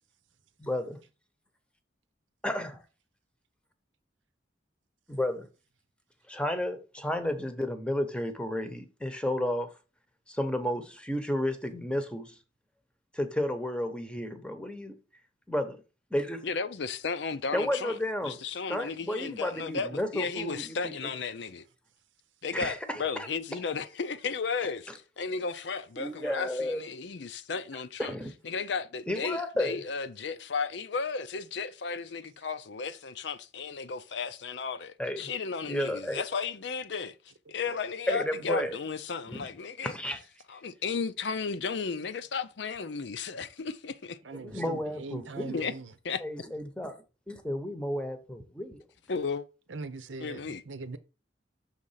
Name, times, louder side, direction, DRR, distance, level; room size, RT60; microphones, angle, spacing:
voice 1, 0.6-1.0 2.4-2.8 5.1-5.5 6.3-9.8 10.3-12.3 13.1-15.0 15.5-15.8 16.1-16.4 17.5-18.4 18.7-20.9 22.5-23.3 26.0-26.8 28.0-28.3 29.1-29.8 35.0-35.3 35.7-36.2 38.1-38.8 39.3-39.5 39.8-40.2 44.3-45.6 46.2-47.0 47.3-48.8, left 1 dB, 5° left, 0.8 m, -32 dB
voice 2, 16.4-18.0 18.2-21.6 22.4-28.1 28.4-37.2 37.5-39.9 40.5-44.2 45.5-45.7 46.0-46.2 49.1-49.5 50.2-50.6, left 5 dB, 65° left, 0.6 m, -34 dB
voice 3, 44.2-45.9 49.7-51.0, right 3 dB, 90° right, 0.8 m, -41 dB
6.5 x 3.7 x 5.6 m
head